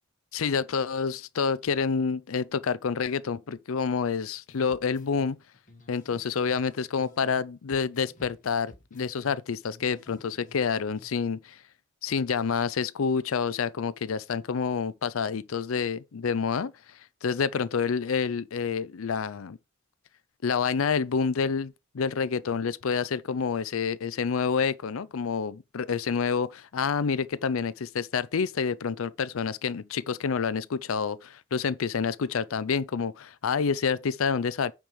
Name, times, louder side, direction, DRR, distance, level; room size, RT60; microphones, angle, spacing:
voice 1, 0.3-5.4 5.9-11.6 12.0-16.7 17.2-19.6 20.4-34.7, left 5 dB, 85° left, 0.5 m, -28 dB
sound 1, 4.5-7.4 7.7-11.1, left 2 dB, 40° left, 2.0 m, -53 dB
9.0 x 4.7 x 5.2 m
head